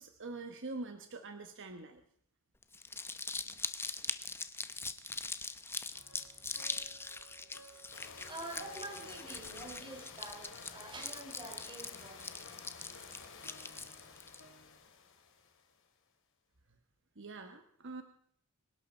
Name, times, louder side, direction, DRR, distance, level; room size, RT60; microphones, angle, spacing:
voice 1, 0.0-2.0 17.2-18.0, right 3 dB, 60° right, 7 dB, 1.2 m, -44 dB
Crumpling crinkling, 2.6-14.4, left 3 dB, 10° left, 0.8 m, -42 dB
sound 1, 5.9-14.8, equal, 85° left, 1.9 m, -58 dB
voice 2, 7.2-7.9 8.1-12.7, right 2 dB, 25° right, 4 dB, 3.8 m, -48 dB
sound 2, 7.9-15.9, left 5 dB, 60° left, 2.7 m, -53 dB
26.0 x 11.5 x 4.4 m, 0.65 s
head